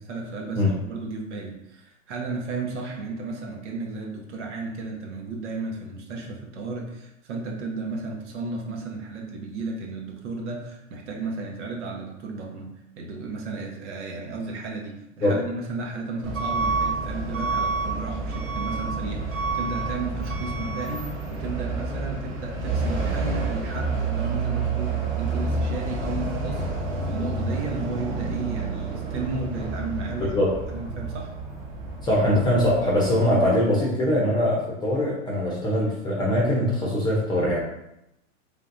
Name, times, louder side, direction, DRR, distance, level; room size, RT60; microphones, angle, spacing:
voice 1, 0.1-26.7 27.0-30.4 30.7-31.3, right 3 dB, 65° right, 1 dB, 1.1 m, -34 dB
Truck / Alarm, 16.2-33.5, right 3 dB, 85° right, 1.5 m, -29 dB
voice 2, 32.0-37.6, left 1 dB, 10° left, -4 dB, 0.8 m, -22 dB
4.4 x 3.7 x 2.6 m, 0.85 s
hypercardioid pair, 140°, 39 cm